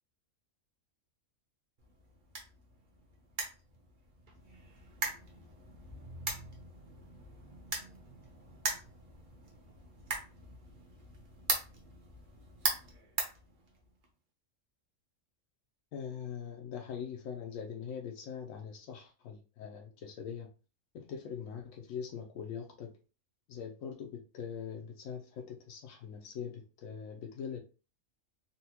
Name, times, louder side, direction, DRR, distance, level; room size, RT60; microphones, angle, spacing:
sound 1, 1.8-14.1, right 3 dB, 45° right, 0.8 m, -40 dB
voice 1, 15.9-20.5 20.9-23.0 23.5-27.6, left 7 dB, 85° left, 1.0 m, -42 dB
4.0 x 2.2 x 2.8 m
omnidirectional pair, 1.4 m